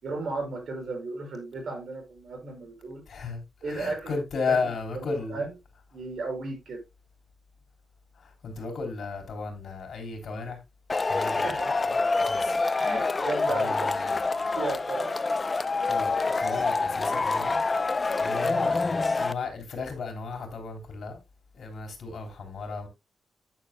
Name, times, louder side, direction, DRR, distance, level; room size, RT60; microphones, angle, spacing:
voice 1, 0.0-3.0 3.6-4.2 4.5-5.5 5.9-6.8 11.4-11.9 12.8-15.2 15.6-15.9 18.1-18.3, right 3 dB, 65° right, 5.5 m, -35 dB
voice 2, 3.1-3.4 3.7-5.4 8.2-10.6 11.1-11.5 12.1-12.6 13.5-14.2 14.5-14.6 15.9-21.2 21.5-22.9, left 4 dB, 65° left, 3.4 m, -34 dB
Male speech man speaking / Shout / Clapping, 10.9-19.3, left 3 dB, 25° left, 0.5 m, -26 dB
11.5 x 9.4 x 2.2 m
wide cardioid pair, 150°, 0 cm